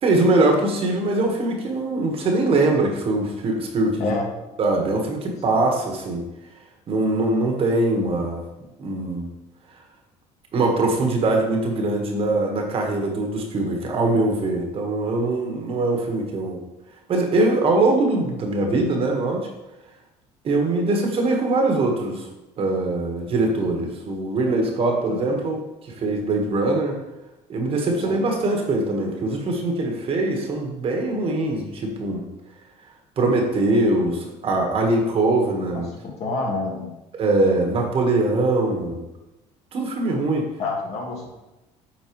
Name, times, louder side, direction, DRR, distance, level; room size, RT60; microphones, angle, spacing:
voice 1, 0.0-4.2 4.6-6.2 6.9-8.4 8.8-9.3 10.5-16.6 17.1-19.5 20.4-22.3 22.6-25.6 26.0-26.9 27.5-32.2 33.2-35.9 37.1-39.1 39.7-40.4, right 2 dB, 45° right, 1 dB, 1.5 m, -22 dB
voice 2, 36.2-36.9 40.6-41.3, left 3 dB, 55° left, -1 dB, 2.0 m, -27 dB
8.6 x 4.0 x 3.1 m, 0.97 s
supercardioid pair, 95°, 13 cm